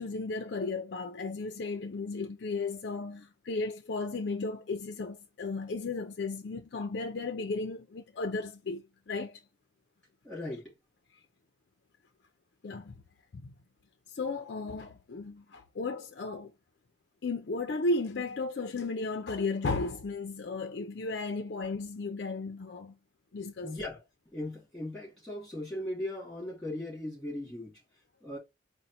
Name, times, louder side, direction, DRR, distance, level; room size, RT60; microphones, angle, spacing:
voice 1, 0.0-9.4 12.6-13.0 13.3-13.5 14.1-16.5 17.2-23.0 23.3-23.8, left 3 dB, 55° left, 0.4 m, -35 dB
voice 2, 10.2-10.7 23.6-24.0 24.3-27.8 28.2-28.4, left 1 dB, 5° left, 2.2 m, -38 dB
4.1 x 2.1 x 4.2 m
head